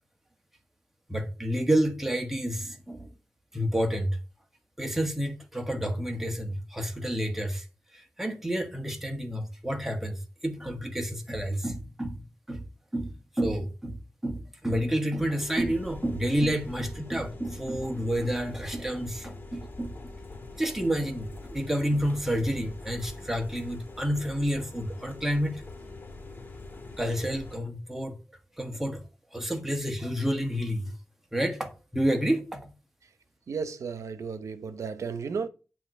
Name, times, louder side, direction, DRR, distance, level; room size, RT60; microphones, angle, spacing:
voice 1, 1.1-3.1 3.5-4.2 4.8-7.7 7.9-12.6 12.9-19.9 20.6-25.6 27.0-28.1 28.6-29.0 29.3-30.9 31.3-32.7, equal, 5° right, 1.3 m, -29 dB
sound 1, 15.4-27.6, left 2 dB, 40° left, 1.7 m, -44 dB
voice 2, 33.5-35.5, right 5 dB, 85° right, 0.8 m, -34 dB
8.7 x 3.0 x 6.3 m
wide cardioid pair, 120°, 5 cm